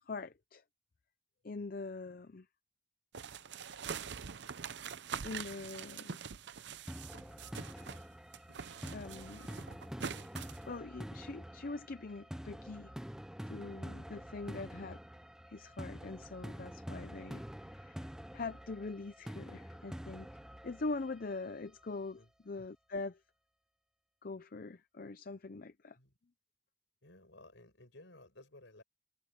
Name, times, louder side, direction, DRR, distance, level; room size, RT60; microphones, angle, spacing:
voice 1, 0.1-0.6 1.4-2.5 5.2-6.2 8.9-9.6 10.7-12.9 13.5-15.0 15.5-20.3 20.6-23.2 24.2-26.0, left 3 dB, 45° left, 0.6 m, -43 dB
sound 1, 3.1-8.1 8.3-10.6, right 6 dB, 55° right, 0.6 m, -44 dB
sound 2, 6.9-21.8, equal, 5° right, 0.5 m, -47 dB
voice 2, 27.0-28.8, left 2 dB, 60° left, 5.9 m, -57 dB
head